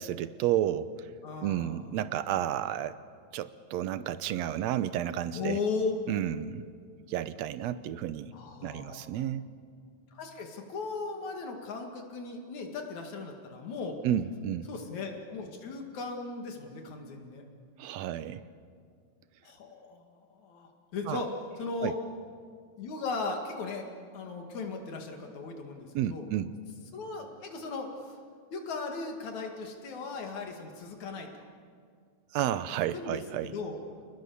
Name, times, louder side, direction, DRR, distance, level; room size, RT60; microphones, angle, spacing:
voice 1, 0.0-1.1 1.4-3.0 3.3-5.6 6.1-6.6 7.1-8.3 8.6-9.4 14.0-14.7 17.8-18.4 21.1-21.2 21.8-21.9 26.0-26.5 32.3-33.5, right 11 dB, 75° right, 14 dB, 1.8 m, -31 dB
voice 2, 1.2-1.9 5.3-5.9 8.3-9.3 10.1-14.0 14.7-17.4 19.4-21.3 21.6-22.0 22.8-23.9 24.1-26.3 26.9-28.2 28.5-31.3 32.5-32.6 32.9-33.8, left 4 dB, 70° left, 3 dB, 3.5 m, -37 dB
29.0 x 20.0 x 7.0 m, 2.1 s
omnidirectional pair, 3.4 m